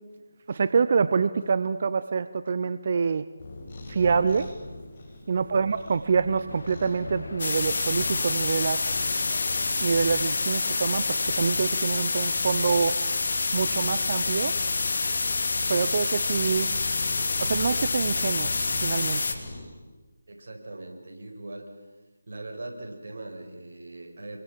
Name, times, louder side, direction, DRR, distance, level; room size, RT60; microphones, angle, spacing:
voice 1, 0.5-3.2 3.9-4.5 5.3-8.8 9.8-13.0 13.5-14.6 15.7-16.7 17.4-19.2, right 5 dB, 45° right, 13 dB, 0.8 m, -26 dB
Cat, 3.4-19.6, left 2 dB, 35° left, 7.9 m, -40 dB
voice 2, 5.4-5.7 20.3-21.7 22.3-24.4, right 2 dB, 60° right, 2 dB, 5.8 m, -40 dB
sound 1, 6.5-11.5, left 2 dB, 70° left, 3.1 m, -42 dB
sound 2, 7.4-19.3, left 4 dB, 55° left, 2.7 m, -27 dB
26.0 x 23.5 x 7.6 m, 1.2 s
figure-of-eight pair, 160°, 0 cm